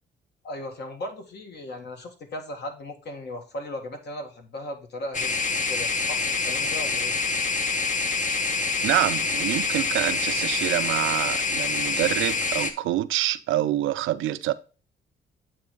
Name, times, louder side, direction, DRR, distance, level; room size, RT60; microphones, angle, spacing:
voice 1, 0.4-7.2, left 1 dB, 60° left, 1.6 m, -37 dB
sound 1, 5.1-12.7, left 4 dB, 40° left, 0.9 m, -26 dB
voice 2, 8.8-14.5, right 14 dB, 80° right, 0.5 m, -26 dB
8.3 x 3.3 x 5.2 m
cardioid pair, 90°, 20 cm